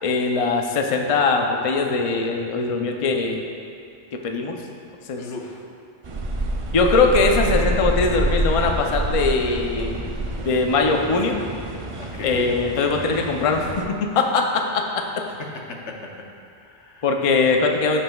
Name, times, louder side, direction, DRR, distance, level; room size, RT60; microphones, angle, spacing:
voice 1, 0.0-3.4 4.1-4.6 5.1-5.2 6.7-10.0 10.4-11.4 12.2-13.7 14.1-15.0 17.0-18.0, left 4 dB, 40° left, 3 dB, 0.5 m, -21 dB
voice 2, 5.2-5.6 12.0-12.6 15.3-16.1 16.6-17.1, left 3 dB, 85° left, 1 dB, 1.2 m, -36 dB
sound 1, 6.0-13.9, right 2 dB, 40° right, 0.5 m, -27 dB
14.5 x 5.6 x 2.3 m, 2.5 s
omnidirectional pair, 1.1 m